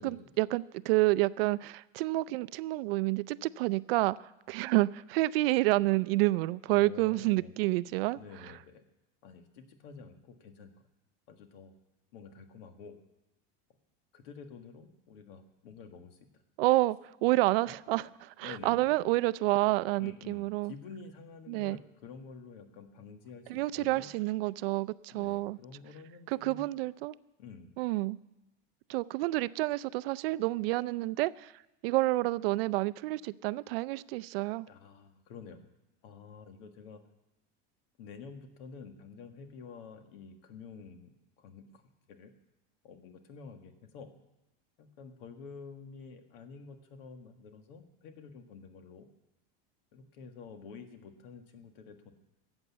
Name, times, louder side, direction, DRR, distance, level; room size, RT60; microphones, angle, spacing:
voice 1, 0.0-8.5 16.6-20.7 21.5-21.8 23.5-25.6 26.3-27.2 27.8-28.2 28.9-31.5 31.8-34.7, right 19 dB, 75° right, 18 dB, 0.5 m, -29 dB
voice 2, 6.7-7.5 8.1-8.8 9.2-10.7 11.3-11.7 12.1-13.0 14.1-16.4 17.4-17.5 17.9-18.0 18.4-18.9 20.0-24.1 25.1-26.6 27.4-27.7 34.7-35.7 36.0-37.0 38.0-41.1 41.4-41.8 42.1-42.3 42.8-44.1 44.8-49.1 49.9-52.1, left 5 dB, 65° left, 6 dB, 1.7 m, -49 dB
14.0 x 8.1 x 8.4 m, 0.95 s
cardioid pair, 175°, 30 cm